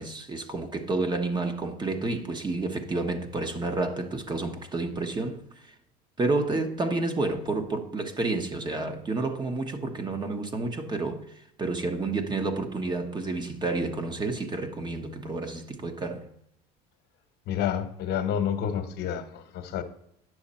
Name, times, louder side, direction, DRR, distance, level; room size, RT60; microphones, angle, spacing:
voice 1, 0.0-5.7 6.2-11.3 11.6-16.3, right 3 dB, 20° right, 1.1 m, -30 dB
voice 2, 17.5-19.8, left 9 dB, 55° left, 1.2 m, -29 dB
9.6 x 6.6 x 4.3 m
supercardioid pair, 115°, 21 cm